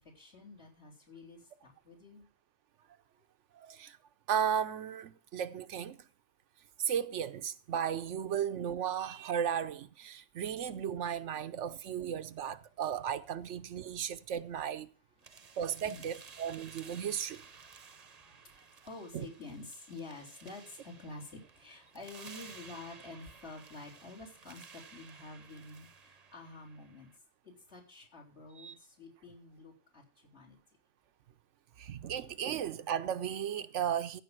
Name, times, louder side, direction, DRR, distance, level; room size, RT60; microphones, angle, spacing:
voice 1, 0.0-2.3 11.3-12.1 13.8-14.1 15.2-15.6 15.8-16.0 17.6-27.1 27.4-30.6, left 3 dB, 65° left, 3.9 m, -50 dB
voice 2, 3.6-4.0 4.3-6.0 6.8-14.9 15.6-16.1 16.4-17.4 19.1-19.2 28.6-28.7 31.8-34.2, right 8 dB, 90° right, 1.1 m, -35 dB
sound 1, 15.2-27.2, right 5 dB, 40° right, 0.8 m, -55 dB
15.0 x 5.2 x 7.6 m
omnidirectional pair, 1.2 m